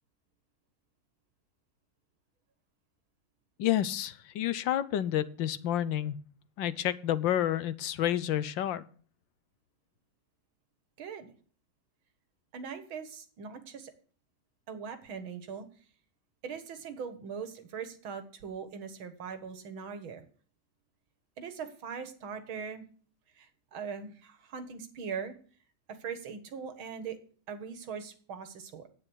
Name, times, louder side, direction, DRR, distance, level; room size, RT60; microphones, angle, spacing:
voice 1, 3.6-6.2 6.6-8.8, left 11 dB, 75° left, 16 dB, 1.5 m, -29 dB
voice 2, 11.0-11.3 12.5-13.9 14.7-15.7 16.4-20.2 21.4-22.9 23.4-25.4 25.9-27.2 27.5-28.9, right 6 dB, 90° right, 10 dB, 2.3 m, -41 dB
9.6 x 9.1 x 6.3 m, 0.43 s
omnidirectional pair, 2.1 m